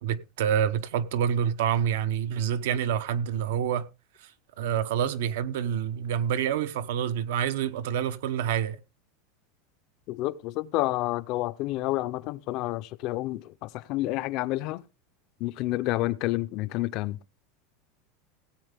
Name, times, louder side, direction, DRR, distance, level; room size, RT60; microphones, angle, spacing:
voice 1, 0.0-3.9 4.2-4.3 4.6-8.8, right 9 dB, 70° right, 0.9 m, -27 dB
voice 2, 10.1-14.8 15.4-17.2, left 17 dB, 40° left, 0.5 m, -29 dB
17.0 x 8.2 x 3.4 m
supercardioid pair, 170°, 0 cm